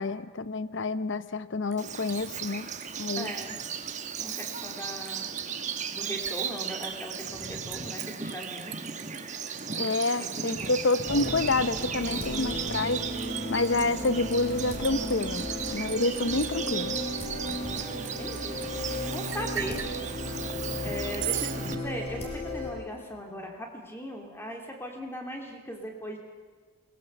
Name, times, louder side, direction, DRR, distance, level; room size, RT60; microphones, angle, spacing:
voice 1, 0.0-2.7 3.0-3.3 9.8-13.0 13.5-17.0, left 3 dB, 55° left, 15 dB, 0.7 m, -28 dB
Liquid, 1.7-3.6 3.9-4.5 4.8-18.7 19.3-19.9 21.2-21.6, right 13 dB, 60° right, 1.1 m, -40 dB
Bird vocalization bird call bird song, 1.8-21.7, right 6 dB, 35° right, 1.1 m, -36 dB
voice 2, 3.2-3.5 4.2-5.3 5.9-8.9 9.6-10.8 17.6-18.7 19.1-19.8 20.8-26.2, equal, 10° left, 1 dB, 2.8 m, -39 dB
sound 1, 11.0-22.7, left 1 dB, 30° left, 4.9 m, -35 dB
21.5 x 20.0 x 7.0 m, 1.5 s
head